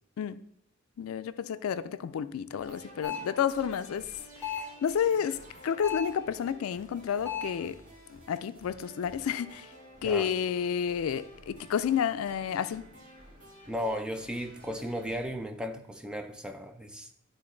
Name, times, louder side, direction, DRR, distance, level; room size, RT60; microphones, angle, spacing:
voice 1, 1.0-4.1 4.4-7.8 8.1-9.7 10.0-12.9, left 8 dB, 85° left, 0.3 m, -30 dB
sound 1, 2.5-15.2, right 1 dB, 35° right, 2.0 m, -52 dB
sound 2, 3.0-3.4 4.4-4.8 5.8-6.2 7.2-7.6, left 7 dB, 10° left, 2.4 m, -35 dB
voice 2, 13.7-17.1, equal, 5° right, 0.4 m, -35 dB
11.0 x 3.8 x 3.8 m
head